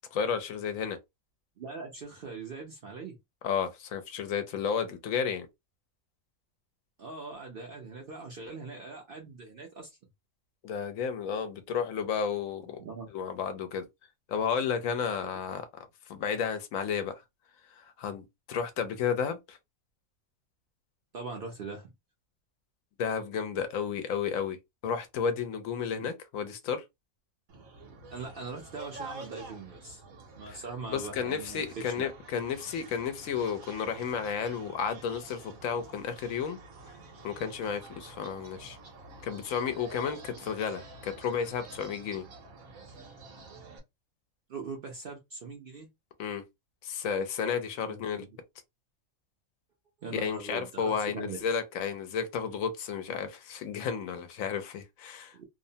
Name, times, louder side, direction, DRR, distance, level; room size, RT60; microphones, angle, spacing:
voice 1, 0.1-1.0 3.4-5.5 10.6-12.8 13.1-13.9 14.3-17.2 17.8-19.6 23.0-26.8 30.5-30.6 30.9-36.6 37.2-38.8 39.2-42.2 46.2-46.4 46.8-48.2 50.1-55.4, left 7 dB, 75° left, 1.0 m, -32 dB
voice 2, 1.6-3.2 7.0-10.0 12.8-13.1 21.1-21.9 28.1-30.0 30.4-32.1 44.5-45.9 47.8-48.3 50.0-51.4 55.3-55.5, right 4 dB, 60° right, 0.6 m, -41 dB
sound 1, 27.5-43.8, right 3 dB, 80° right, 1.2 m, -48 dB
2.8 x 2.0 x 2.6 m
omnidirectional pair, 1.4 m